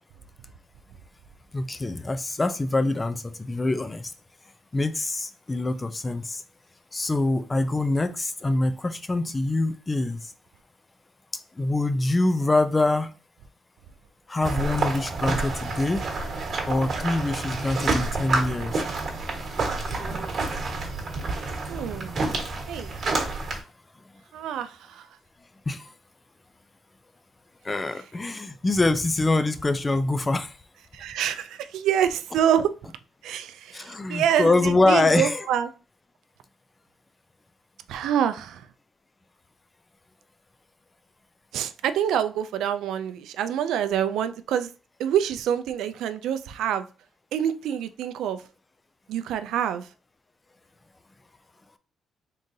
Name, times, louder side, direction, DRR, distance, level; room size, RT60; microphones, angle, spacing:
voice 1, 1.5-4.1 4.7-6.4 6.9-10.3 11.6-13.1 14.3-16.1 16.7-18.8 19.3-19.4 25.7-25.9 27.6-30.5 33.7-35.5, left 2 dB, 25° left, 11 dB, 0.4 m, -25 dB
sound 1, 14.4-23.6, right 3 dB, 50° right, 1.3 m, -29 dB
voice 2, 21.7-22.2 22.7-22.9 24.3-25.1 30.9-32.7 33.2-35.7 37.9-38.7 41.5-44.7 45.0-46.9 47.3-48.4 49.1-49.9, right 9 dB, 85° right, 11 dB, 0.3 m, -26 dB
3.7 x 3.7 x 2.7 m, 0.34 s
cardioid pair, 90°, 0 cm